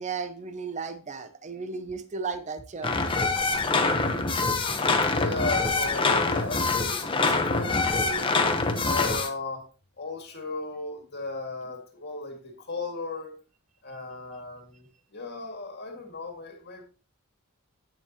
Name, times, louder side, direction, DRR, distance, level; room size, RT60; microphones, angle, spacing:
voice 1, 0.0-3.0, right 5 dB, 30° right, 0.6 m, -34 dB
sound 1, 2.8-9.3, left 3 dB, 25° left, 0.9 m, -25 dB
voice 2, 4.9-8.3 8.8-9.6 10.0-13.4 13.8-14.9 15.1-16.9, left 3 dB, 50° left, 2.0 m, -36 dB
8.9 x 7.0 x 2.9 m
head